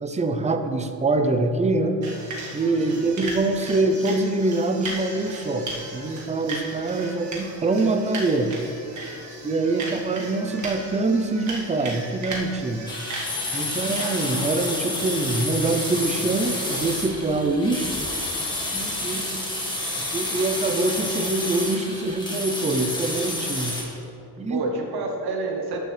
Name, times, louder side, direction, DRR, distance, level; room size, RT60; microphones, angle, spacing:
voice 1, 0.0-2.0 2.5-8.5 9.4-12.9 13.5-17.9 18.7-19.4 20.1-23.8 24.4-24.6, right 2 dB, 20° right, 8 dB, 0.5 m, -24 dB
sound 1, 2.0-16.9, right 2 dB, 50° right, 1.5 m, -37 dB
voice 2, 2.7-3.1 9.2-9.4 9.7-9.9 18.4-18.5 18.9-19.1 24.5-25.8, right 3 dB, 80° right, 2 dB, 1.0 m, -30 dB
sound 2, 12.9-23.8, left 2 dB, 10° left, 1.6 m, -29 dB
13.0 x 6.6 x 3.3 m, 2.9 s
cardioid pair, 130°, 37 cm